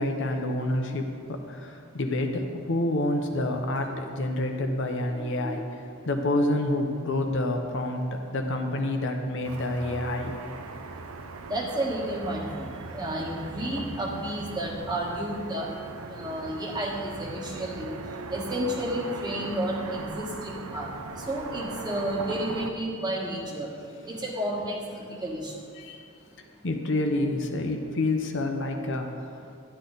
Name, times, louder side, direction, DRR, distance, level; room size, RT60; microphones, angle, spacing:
voice 1, 0.0-5.6 6.1-8.0 8.3-10.3 25.8-26.0 26.6-29.1, left 1 dB, 60° left, 4 dB, 0.9 m, -28 dB
voice 2, 5.2-5.5 11.5-12.5 12.9-15.7 16.1-17.9 18.3-20.9 21.3-23.7 24.1-25.5, right 1 dB, 20° right, -2 dB, 1.4 m, -31 dB
Car passing by / Traffic noise roadway noise, 9.4-22.7, right 3 dB, 85° right, 0.7 m, -39 dB
11.5 x 10.0 x 4.0 m, 2.3 s
head